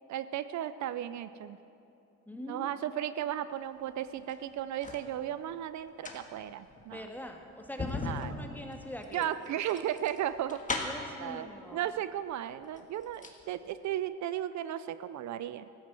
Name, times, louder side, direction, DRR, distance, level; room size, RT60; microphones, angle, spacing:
voice 1, 0.1-1.6 2.5-7.1 8.0-8.3 9.1-10.6 11.2-15.7, right 11 dB, 70° right, 14 dB, 0.5 m, -35 dB
voice 2, 2.3-2.8 6.9-9.3 10.8-11.8, left 1 dB, 5° left, 3 dB, 1.6 m, -43 dB
sound 1, 4.1-5.1 5.8-11.2 12.2-12.3 12.6-13.4 13.7-13.8, left 3 dB, 25° left, 1.7 m, -39 dB
14.0 x 9.4 x 7.5 m, 2.7 s
cardioid pair, 90°, 30 cm